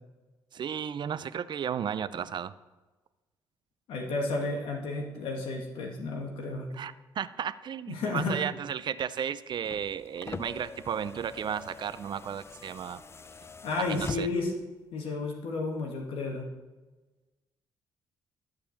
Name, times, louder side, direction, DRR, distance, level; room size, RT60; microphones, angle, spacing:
voice 1, 0.5-2.5 6.7-13.0 13.8-14.3, right 8 dB, 55° right, 14 dB, 0.6 m, -34 dB
voice 2, 3.9-6.7 7.9-8.4 13.6-14.6 14.9-16.5, left 3 dB, 75° left, 1 dB, 1.8 m, -32 dB
sound 1, 9.5-14.6 15.8-15.9, left 4 dB, 30° left, 0.5 m, -43 dB
12.0 x 4.8 x 7.2 m, 1.2 s
supercardioid pair, 60°, 9 cm